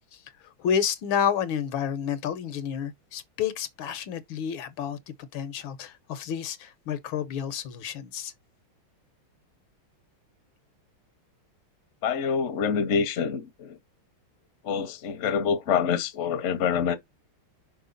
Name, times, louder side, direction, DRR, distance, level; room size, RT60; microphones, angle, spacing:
voice 1, 0.1-5.0 5.3-8.3, left 8 dB, 75° left, 1.6 m, -30 dB
voice 2, 12.0-13.8 14.6-16.9, left 6 dB, 50° left, 1.0 m, -26 dB
5.6 x 4.4 x 3.9 m
omnidirectional pair, 2.3 m